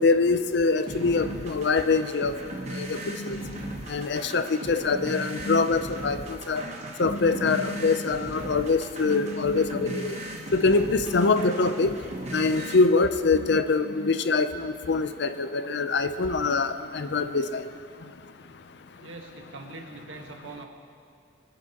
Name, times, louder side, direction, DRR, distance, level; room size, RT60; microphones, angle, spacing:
voice 1, 0.0-2.4 2.7-3.6 3.9-6.6 7.0-10.1 10.5-12.0 12.3-17.6, left 3 dB, 60° left, 10 dB, 0.6 m, -24 dB
sound 1, 0.9-12.9, right 1 dB, 35° right, 1.1 m, -38 dB
voice 2, 19.0-20.7, right 3 dB, 90° right, 2 dB, 1.5 m, -42 dB
23.0 x 10.5 x 2.9 m, 2.5 s
head